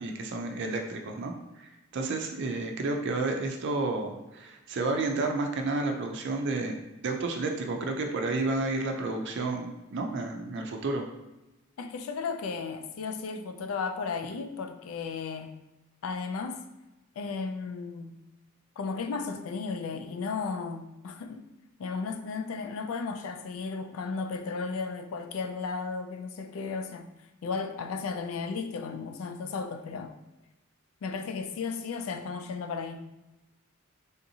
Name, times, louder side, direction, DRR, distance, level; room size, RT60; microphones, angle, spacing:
voice 1, 0.0-1.3 1.6-11.0, right 3 dB, 60° right, 3 dB, 0.4 m, -31 dB
voice 2, 11.8-15.5 16.0-16.7 17.2-18.2 18.8-21.4 21.8-27.1 27.4-30.1 31.0-33.0, left 4 dB, 75° left, 7 dB, 0.4 m, -34 dB
3.5 x 2.7 x 2.7 m, 0.97 s
head